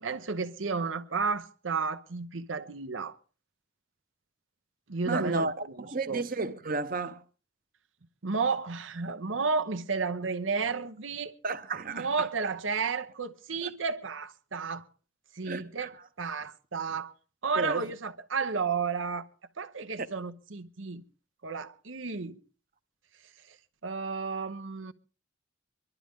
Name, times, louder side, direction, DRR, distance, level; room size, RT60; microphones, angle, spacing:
voice 1, 0.0-3.2 4.9-6.2 8.2-11.3 11.9-14.8 15.4-17.1 17.4-19.3 19.6-21.0 21.4-22.4 23.8-24.9, right 4 dB, 85° right, 1.0 m, -32 dB
voice 2, 5.0-5.5 5.8-7.2 11.4-12.3 13.6-13.7 15.4-15.9 17.5-17.9 20.0-20.1, right 3 dB, 45° right, 0.9 m, -32 dB
24.0 x 12.0 x 3.6 m
head